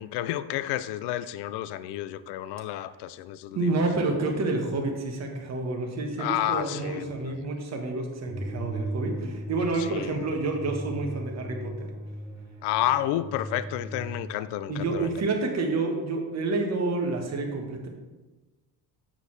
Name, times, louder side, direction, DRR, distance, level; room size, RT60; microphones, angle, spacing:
voice 1, 0.0-3.7 6.2-7.4 9.9-10.4 12.6-15.1, left 12 dB, 75° left, 15 dB, 0.5 m, -30 dB
voice 2, 3.5-11.9 14.7-17.9, right 3 dB, 40° right, 2 dB, 1.3 m, -29 dB
sound 1, 8.2-14.2, right 1 dB, 5° right, 2.4 m, -37 dB
7.5 x 6.6 x 3.2 m, 1.2 s
cardioid pair, 130°, 41 cm